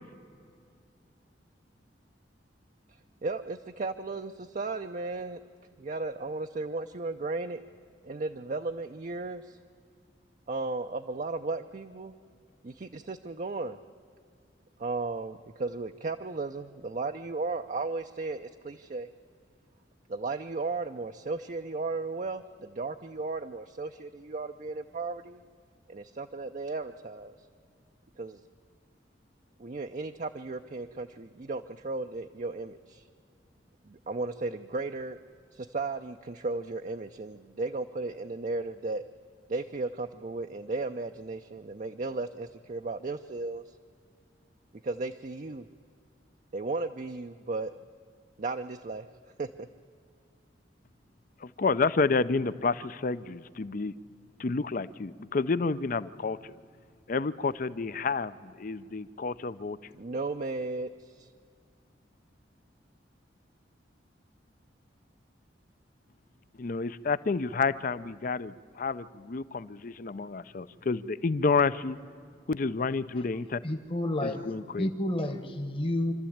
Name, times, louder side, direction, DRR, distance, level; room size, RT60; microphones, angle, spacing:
voice 1, 3.2-5.4 5.8-7.6 8.0-9.6 10.5-12.1 12.6-13.8 14.8-19.1 20.1-25.4 25.9-27.3 28.2-28.4 29.6-33.1 33.9-35.2 35.5-39.0 39.5-43.7 44.8-45.7 46.5-47.7 48.4-49.1 49.4-49.7 59.9-61.3, right 3 dB, 40° right, 7 dB, 0.5 m, -35 dB
voice 2, 51.4-53.9 54.4-56.5 57.1-59.8 66.6-72.0 72.5-73.6 74.2-74.9, left 4 dB, 45° left, 16 dB, 0.5 m, -30 dB
voice 3, 73.6-74.4 74.8-76.1, left 1 dB, 30° left, 6 dB, 1.2 m, -30 dB
26.0 x 13.0 x 8.6 m, 2.2 s
head